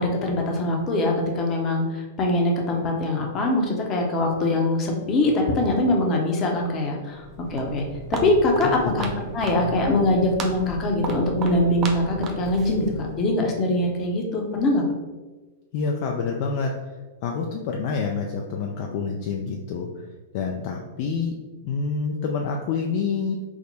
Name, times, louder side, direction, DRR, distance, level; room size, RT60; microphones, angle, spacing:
voice 1, 0.0-7.2 7.5-7.8 8.2-9.1 9.3-14.8, left 2 dB, 30° left, 1 dB, 0.8 m, -23 dB
Walk footsteps, 7.1-13.3, right 4 dB, 35° right, 0.5 m, -35 dB
voice 2, 8.6-9.2 15.7-16.8 17.2-20.1 20.3-21.4 21.6-23.4, left 5 dB, 50° left, 1 dB, 0.3 m, -27 dB
3.5 x 2.1 x 3.9 m, 1.2 s
figure-of-eight pair, 100°, 0 cm